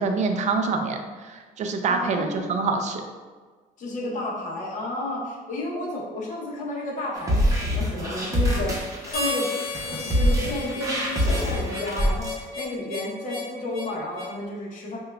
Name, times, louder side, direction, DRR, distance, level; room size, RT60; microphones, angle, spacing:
voice 1, 0.0-3.0, right 4 dB, 45° right, 5 dB, 0.4 m, -26 dB
voice 2, 1.8-2.6 3.8-15.0, left 1 dB, 50° left, -4 dB, 0.9 m, -32 dB
sound 1, 7.2-12.3, equal, 20° right, 0.8 m, -25 dB
Harmonica, 9.1-14.4, left 3 dB, 65° left, 1.4 m, -33 dB
5.4 x 2.3 x 2.3 m, 1.4 s
cardioid pair, 110°, 17 cm